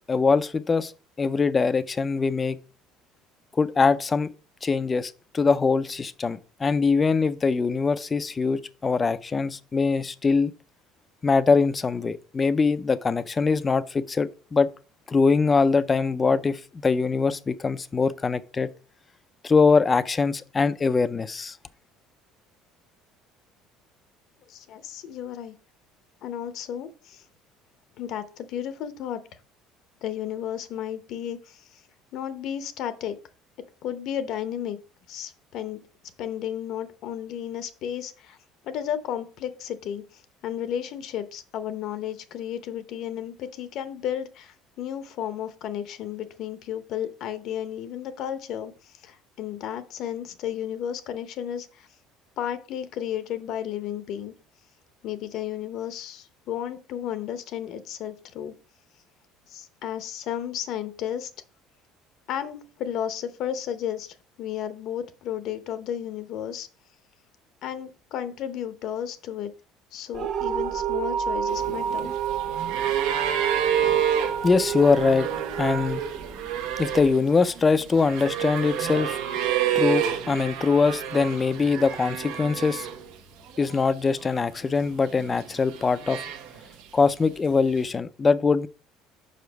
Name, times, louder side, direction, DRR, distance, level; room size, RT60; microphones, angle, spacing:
voice 1, 0.1-0.9 1.2-2.6 3.5-4.3 4.6-10.5 11.2-14.7 15.1-18.7 19.4-21.6 74.4-75.3 75.6-76.0 76.8-79.2 79.8-82.9 83.6-86.3 86.9-88.7, left 4 dB, 20° left, 0.4 m, -22 dB
voice 2, 24.5-25.5 26.2-27.2 28.0-29.2 30.0-31.8 32.1-33.2 33.8-34.8 35.1-35.8 36.2-38.4 38.6-51.9 52.4-54.3 55.0-58.5 59.5-61.3 62.3-66.7 67.6-69.5 69.9-72.1, left 10 dB, 55° left, 0.7 m, -33 dB
sound 1, 70.1-77.1, right 9 dB, 50° right, 1.3 m, -29 dB
sound 2, 71.5-83.2 83.5-84.4 85.1-86.8 87.8-87.9, right 9 dB, 80° right, 1.0 m, -29 dB
5.7 x 5.1 x 4.6 m
cardioid pair, 155°, 0 cm